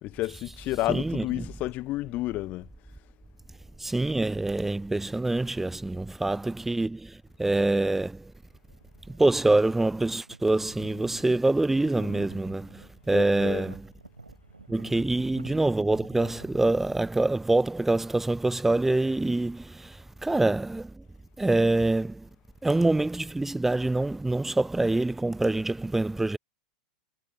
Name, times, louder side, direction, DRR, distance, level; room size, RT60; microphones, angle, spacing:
voice 1, 0.0-2.7 13.1-13.7, left 17 dB, 40° left, 0.5 m, -31 dB
voice 2, 0.9-1.2 3.8-8.3 9.1-13.8 14.7-21.0 21.4-22.3 22.6-26.4, right 2 dB, 5° right, 0.7 m, -25 dB
sound 1, 8.6-9.2 9.5-16.6, right 3 dB, 85° right, 3.5 m, -50 dB
figure-of-eight pair, 90°, 4 cm